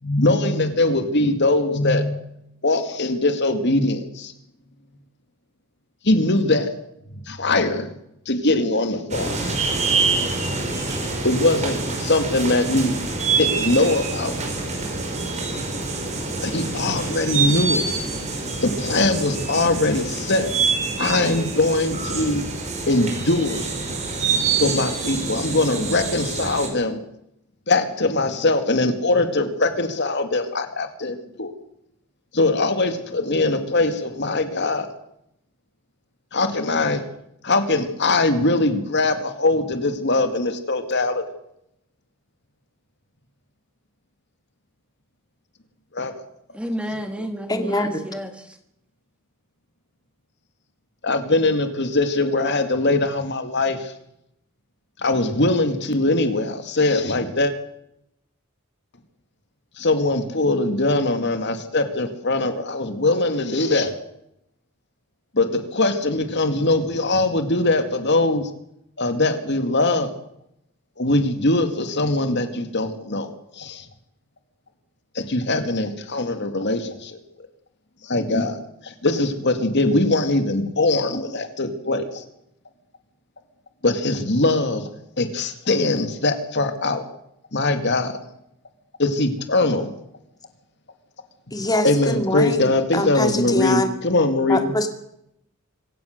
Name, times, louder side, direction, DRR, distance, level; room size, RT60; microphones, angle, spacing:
voice 1, 0.0-2.2 2.6-4.3 6.0-6.7 7.3-7.9 8.3-9.5 11.2-13.0 13.4-14.3 16.4-17.9 18.6-20.5 21.0-22.5 22.9-23.7 24.6-27.0 27.7-31.5 32.3-34.9 36.3-37.0 37.4-41.2 45.9-46.1 47.2-47.3 51.0-53.9 55.0-57.5 59.8-64.0 65.3-68.5 69.0-70.1 71.0-73.9 75.1-77.2 78.0-78.6 78.8-82.2 83.8-84.9 85.2-87.0 87.5-88.2 89.0-89.9 91.8-94.7, left 2 dB, 55° left, 2.3 m, -21 dB
sound 1, 9.1-26.7, right 4 dB, 35° right, 4.7 m, -26 dB
voice 2, 46.5-48.6, equal, 5° right, 1.5 m, -31 dB
voice 3, 47.5-48.2 91.5-93.9 94.5-94.9, left 1 dB, 20° left, 2.4 m, -24 dB
25.5 x 16.0 x 6.7 m
head